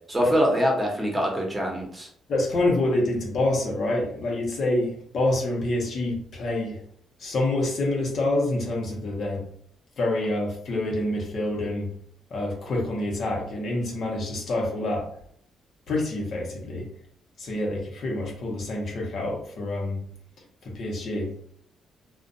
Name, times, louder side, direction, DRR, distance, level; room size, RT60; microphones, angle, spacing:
voice 1, 0.1-2.1, equal, 15° right, 0 dB, 0.9 m, -24 dB
voice 2, 2.3-6.8 7.2-9.5 10.0-11.9 12.3-15.1 15.9-16.9 17.4-20.0 20.6-21.3, left 2 dB, 60° left, -1 dB, 0.8 m, -27 dB
2.4 x 2.2 x 2.6 m, 0.64 s
cardioid pair, 90°, 0 cm